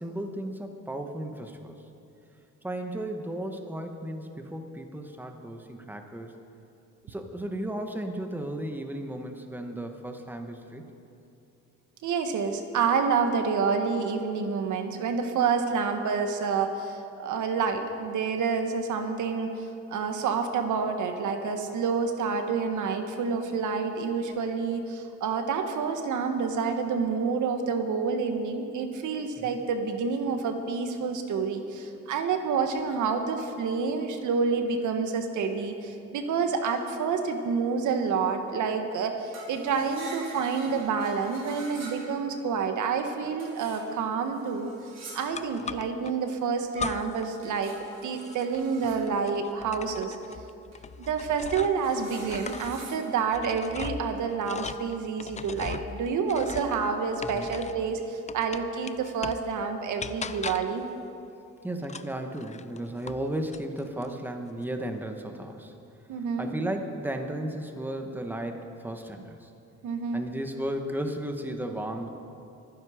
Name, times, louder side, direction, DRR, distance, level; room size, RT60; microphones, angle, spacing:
voice 1, 0.0-1.7 2.6-6.3 7.0-10.8 29.4-29.5 57.2-57.5 61.6-65.8 66.4-69.5 70.1-72.1, right 1 dB, 5° right, 4 dB, 1.5 m, -34 dB
voice 2, 12.0-19.5 19.9-44.7 45.1-47.7 48.0-50.2 51.0-60.8 66.1-66.5 69.8-70.2, right 5 dB, 75° right, 6 dB, 1.4 m, -28 dB
sound 1, 39.3-42.4 43.4-45.5 47.4-49.1 50.7-50.8 51.3-53.1, right 3 dB, 60° right, 4.6 m, -47 dB
sound 2, 45.3-46.1 46.7-47.3 47.6-51.9 52.2-57.9 58.3-59.5 60.0-60.8 61.8-63.2 63.5-64.1, left 5 dB, 25° left, 0.5 m, -39 dB
24.0 x 10.0 x 5.1 m, 2.7 s
cardioid pair, 90°, 30 cm